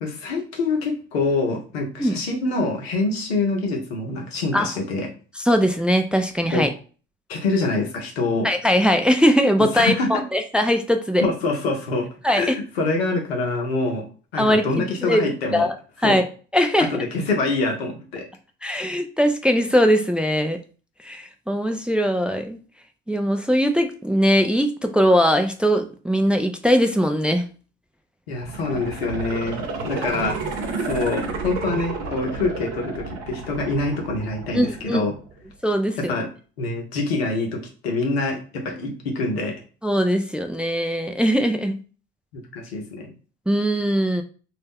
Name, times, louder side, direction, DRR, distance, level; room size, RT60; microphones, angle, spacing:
voice 1, 0.0-5.1 6.5-6.7 7.3-8.5 9.7-10.2 11.2-14.0 14.3-15.7 16.0-16.2 16.9-18.3 28.3-30.4 30.8-35.1 36.0-36.3 36.6-39.6 42.3-43.1, left 3 dB, 90° left, 2 dB, 0.7 m, -25 dB
voice 2, 5.5-6.7 8.4-11.2 12.2-12.6 14.4-15.7 16.0-16.3 16.5-17.0 18.6-20.6 21.1-22.6 23.1-27.4 30.0-30.1 34.5-35.0 35.6-36.1 39.8-41.8 43.5-44.2, equal, 5° right, 6 dB, 0.3 m, -20 dB
sound 1, 28.3-35.3 35.7-35.8, right 4 dB, 70° right, 0.8 m, -31 dB
2.3 x 2.0 x 3.4 m, 0.38 s
hypercardioid pair, 60°, 30 cm